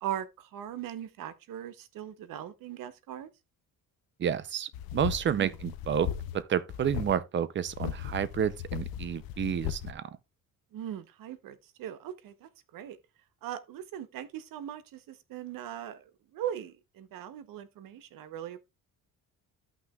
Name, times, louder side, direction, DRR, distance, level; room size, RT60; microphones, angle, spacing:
voice 1, 0.0-3.3 5.3-5.5 10.7-13.0 13.4-16.0 16.3-18.7, right 11 dB, 70° right, 1.0 m, -39 dB
voice 2, 4.2-6.1 6.3-10.0, right 8 dB, 35° right, 0.5 m, -30 dB
sound 1, 4.7-6.4 6.7-7.1 7.7-9.9, left 11 dB, 85° left, 0.8 m, -37 dB
13.5 x 5.9 x 2.3 m
cardioid pair, 135°, 35 cm